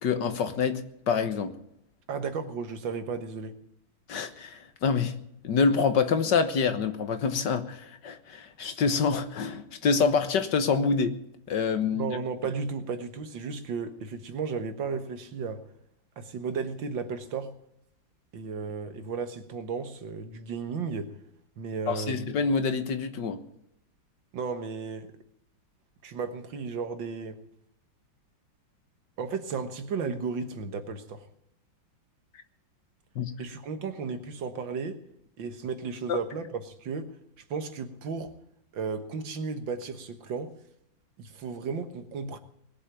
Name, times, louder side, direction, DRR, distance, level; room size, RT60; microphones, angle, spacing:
voice 1, 0.0-1.5 4.1-5.2 5.4-11.2 11.5-12.1 21.9-23.4 33.2-33.3 36.1-36.2, left 5 dB, 65° left, 1.8 m, -26 dB
voice 2, 2.1-3.6 11.9-15.6 16.2-17.5 18.3-21.1 21.6-22.3 24.3-25.1 26.0-27.4 29.2-31.3 33.4-35.0 35.4-37.1 37.5-38.3 38.7-40.5 41.2-42.4, right 5 dB, 75° right, 2.1 m, -34 dB
20.5 x 7.3 x 9.0 m
omnidirectional pair, 2.1 m